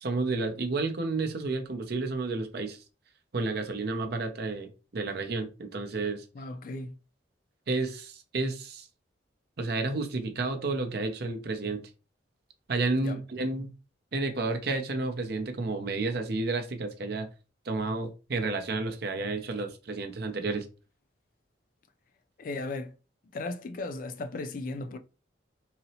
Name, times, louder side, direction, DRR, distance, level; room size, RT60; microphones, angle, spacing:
voice 1, 0.0-2.8 3.3-6.2 7.7-8.9 9.6-11.8 12.7-13.7 14.1-17.3 17.7-20.7, right 3 dB, 60° right, 0.6 m, -31 dB
voice 2, 6.3-6.9 12.9-13.2 22.4-23.0 23.2-25.0, left 2 dB, 50° left, 0.4 m, -36 dB
4.0 x 2.0 x 2.7 m
head